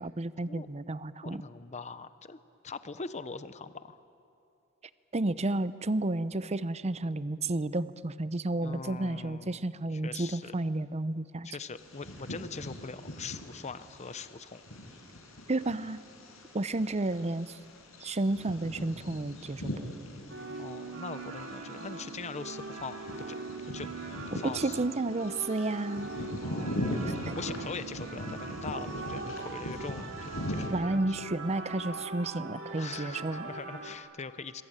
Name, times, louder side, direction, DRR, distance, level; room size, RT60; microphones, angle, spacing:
voice 1, 0.0-1.4 5.1-11.5 15.5-16.0 16.5-17.6 18.0-19.7 24.4-26.1 27.3-27.4 30.7-33.5, right 2 dB, 30° right, 15 dB, 0.7 m, -31 dB
voice 2, 1.2-4.0 8.6-9.7 9.9-10.5 11.4-14.6 20.6-23.4 23.7-23.9 24.3-24.8 26.3-30.9 32.7-34.6, left 4 dB, 30° left, 13 dB, 0.7 m, -42 dB
Bird vocalization bird call bird song, 11.8-30.7, equal, 70° left, 5.4 m, -40 dB
sound 1, 20.3-34.0, right 3 dB, 65° right, 2.6 m, -41 dB
27.0 x 22.0 x 8.9 m, 2.6 s
head